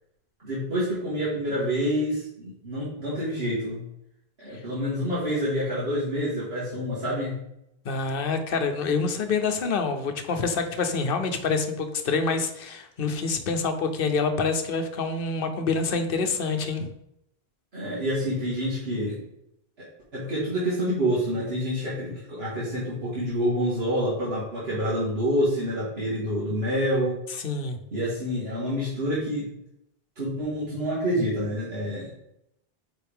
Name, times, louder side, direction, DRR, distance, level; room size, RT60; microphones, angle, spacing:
voice 1, 0.4-3.8 4.4-7.4 17.7-19.2 19.8-19.9 20.1-27.2 27.9-29.5 30.2-32.1, equal, 85° right, -9 dB, 2.2 m, -27 dB
voice 2, 7.8-16.9 27.4-27.8, left 4 dB, 65° left, 7 dB, 1.0 m, -26 dB
9.2 x 4.2 x 3.6 m, 0.80 s
omnidirectional pair, 1.0 m